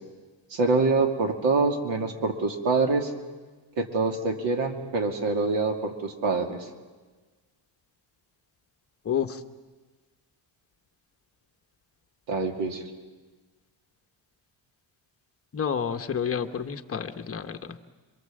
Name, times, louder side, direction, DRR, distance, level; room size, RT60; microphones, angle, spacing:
voice 1, 0.5-3.1 3.7-6.7 12.3-12.8, right 3 dB, 65° right, 4 dB, 2.9 m, -25 dB
voice 2, 9.0-9.4 15.5-17.8, left 7 dB, 30° left, 7 dB, 1.0 m, -29 dB
27.5 x 24.0 x 7.7 m, 1.3 s
cardioid pair, 170°, 48 cm